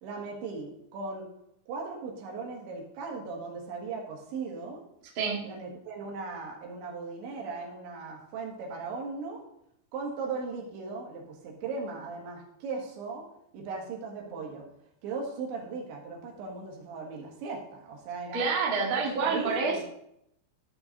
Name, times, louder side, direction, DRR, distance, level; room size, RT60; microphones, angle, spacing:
voice 1, 0.0-1.3 1.7-4.8 5.4-9.4 9.9-13.3 13.5-14.7 15.0-18.5 19.0-19.8, right 4 dB, 75° right, -1 dB, 4.0 m, -38 dB
voice 2, 5.1-5.5 18.3-19.8, right 4 dB, 50° right, -2 dB, 1.5 m, -28 dB
14.0 x 5.9 x 3.9 m, 0.77 s
omnidirectional pair, 5.5 m